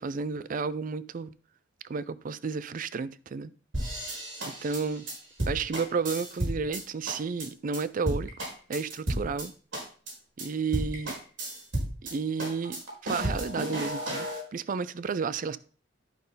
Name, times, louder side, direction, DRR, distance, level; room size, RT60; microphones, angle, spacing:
voice 1, 0.0-1.3 1.9-3.5 4.6-5.0 5.5-8.3 8.7-9.5 10.4-11.2 12.1-12.8 13.0-15.6, right 5 dB, 45° right, 0.4 m, -32 dB
sound 1, 3.7-6.8 7.1-7.4 7.7-7.8 8.1-9.4 9.7-10.1 10.4-10.5 10.7-12.1 12.4-14.4, right 1 dB, 90° right, 4.3 m, -32 dB
11.5 x 5.5 x 3.8 m
head